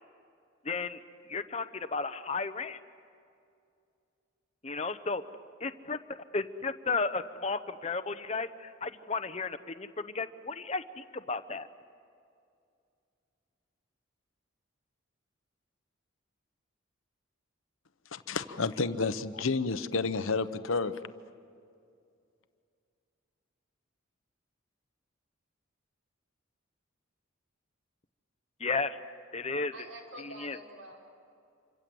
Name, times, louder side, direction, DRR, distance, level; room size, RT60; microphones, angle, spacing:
voice 1, 0.6-1.0 1.3-2.8 4.6-5.2 5.6-6.0 6.3-11.7 28.6-29.0 29.3-29.7 30.2-30.6, left 4 dB, 30° left, 10 dB, 0.9 m, -33 dB
voice 2, 18.1-20.9, left 4 dB, 75° left, 12 dB, 0.9 m, -30 dB
voice 3, 29.7-31.0, right 1 dB, 70° right, 0 dB, 4.9 m, -47 dB
27.5 x 25.0 x 7.8 m, 2.4 s
head